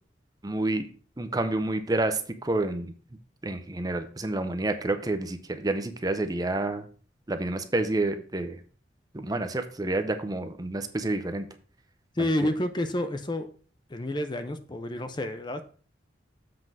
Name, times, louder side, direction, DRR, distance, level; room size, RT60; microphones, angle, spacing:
voice 1, 0.4-0.9 1.2-2.9 3.4-6.9 7.3-8.6 9.1-11.5 12.2-12.3, right 2 dB, 20° right, 8 dB, 0.6 m, -29 dB
voice 2, 12.2-13.5 13.9-15.6, left 1 dB, 25° left, 9 dB, 0.6 m, -29 dB
7.7 x 3.8 x 6.0 m, 0.42 s
head